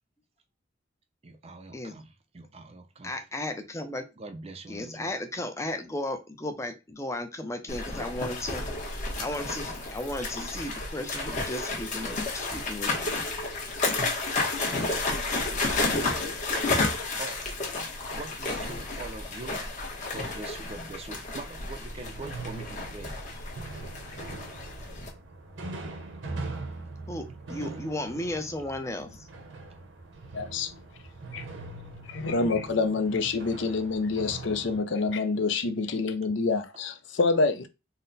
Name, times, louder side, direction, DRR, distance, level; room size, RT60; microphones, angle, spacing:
voice 1, 1.2-3.2 4.2-5.1 11.3-11.4 17.0-17.4 18.1-19.6 20.1-23.2, right 3 dB, 30° right, 0.5 m, -43 dB
voice 2, 3.0-4.0 4.7-8.6 9.2-13.2 27.1-29.3, left 1 dB, 15° left, 0.5 m, -35 dB
sound 1, 7.7-25.1, left 3 dB, 40° left, 1.1 m, -31 dB
sound 2, 21.9-34.8, right 3 dB, 75° right, 0.9 m, -41 dB
voice 3, 30.3-30.7 31.3-31.5 32.1-37.7, left 3 dB, 65° left, 0.5 m, -27 dB
4.1 x 2.1 x 3.9 m
head